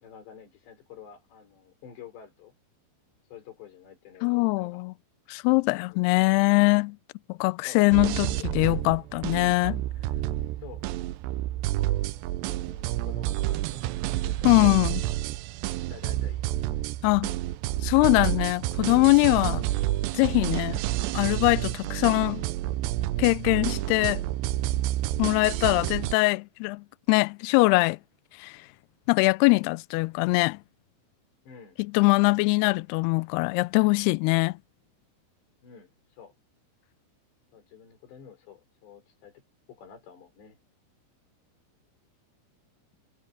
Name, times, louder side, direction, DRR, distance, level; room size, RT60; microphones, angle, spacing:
voice 1, 0.0-2.5 3.3-4.8 5.9-6.1 7.3-8.4 10.6-10.9 12.2-13.9 14.2-14.8 15.9-16.7 31.5-31.8 35.6-36.4 37.5-39.4 39.7-40.6, left 8 dB, 70° left, 6.7 m, -49 dB
voice 2, 4.2-4.9 5.3-7.0 7.3-9.8 14.5-15.0 17.0-17.3 17.8-19.6 20.1-20.8 21.1-22.4 23.2-24.2 25.2-28.0 28.4-28.5 29.1-30.6 31.9-34.6, left 26 dB, 90° left, 2.3 m, -22 dB
sound 1, 7.9-26.2, right 15 dB, 80° right, 2.8 m, -29 dB
omnidirectional pair, 5.2 m